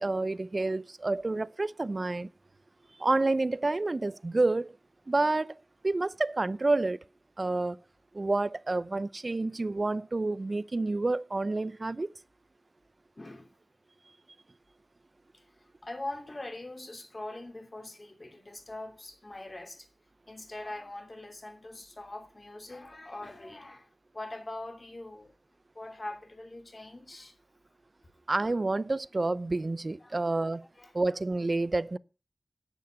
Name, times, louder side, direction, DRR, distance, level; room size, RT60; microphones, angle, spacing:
voice 1, 0.0-2.3 3.0-4.8 5.1-5.6 5.8-7.0 7.4-7.8 8.1-12.1 28.3-30.6 30.9-32.0, right 2 dB, 45° right, 0.6 m, -29 dB
voice 2, 13.2-13.5 15.3-15.4 15.8-19.9 20.3-23.9 24.1-25.3 25.7-27.3 30.0-30.3 30.8-31.0, left 2 dB, 40° left, 3.1 m, -42 dB
11.0 x 9.2 x 8.0 m
wide cardioid pair, 80°, 0 cm